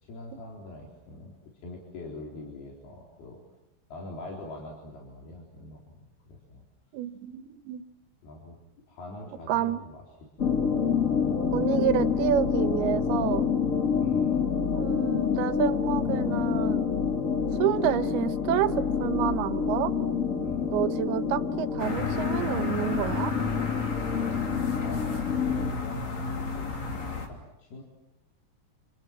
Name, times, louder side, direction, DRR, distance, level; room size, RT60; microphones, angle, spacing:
voice 1, 0.1-3.4 3.9-6.7 8.2-8.6 8.9-10.6 14.0-14.4 15.1-15.3 20.4-20.8 24.1-27.8, left 2 dB, 85° left, -2 dB, 6.1 m, -44 dB
voice 2, 6.9-7.8 9.5-9.8 11.5-13.5 14.7-16.8 17.6-19.9 20.7-23.3, right 11 dB, 90° right, 12 dB, 3.0 m, -29 dB
sound 1, 10.4-25.7, left 6 dB, 30° left, 1.7 m, -27 dB
sound 2, 21.8-27.3, left 4 dB, 50° left, 4.3 m, -33 dB
29.5 x 29.0 x 6.2 m, 0.93 s
omnidirectional pair, 4.4 m